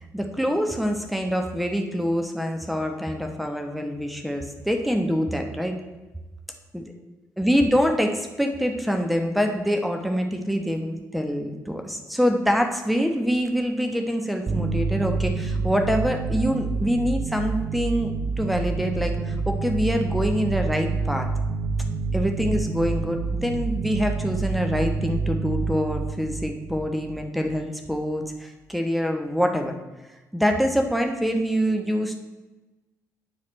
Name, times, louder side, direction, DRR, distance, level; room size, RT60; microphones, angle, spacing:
voice 1, 0.1-5.8 6.7-6.8 7.4-18.1 18.4-21.3 22.1-29.7 30.3-32.2, equal, ahead, 4 dB, 1.1 m, -25 dB
sound 1, 14.5-27.6, right 4 dB, 35° right, 1.0 m, -28 dB
10.5 x 4.8 x 4.2 m, 1.1 s
figure-of-eight pair, 40°, 9 cm